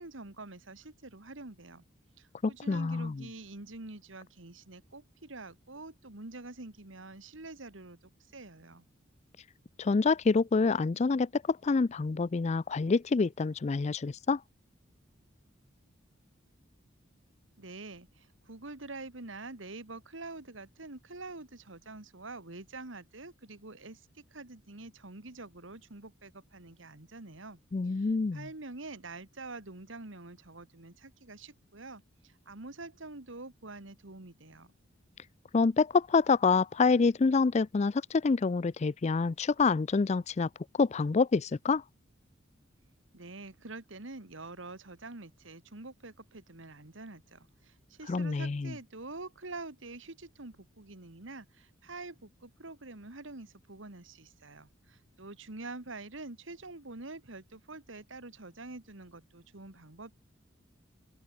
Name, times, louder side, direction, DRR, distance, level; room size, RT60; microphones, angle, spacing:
voice 1, 0.0-1.8 2.2-8.0 8.3-8.9 17.6-27.6 27.8-34.7 43.1-60.1, right 2 dB, 75° right, 2.1 m, -46 dB
voice 2, 2.4-3.2 9.8-14.4 27.7-28.4 35.5-40.5 40.8-41.8 48.1-48.7, left 4 dB, 35° left, 0.4 m, -27 dB
open air
head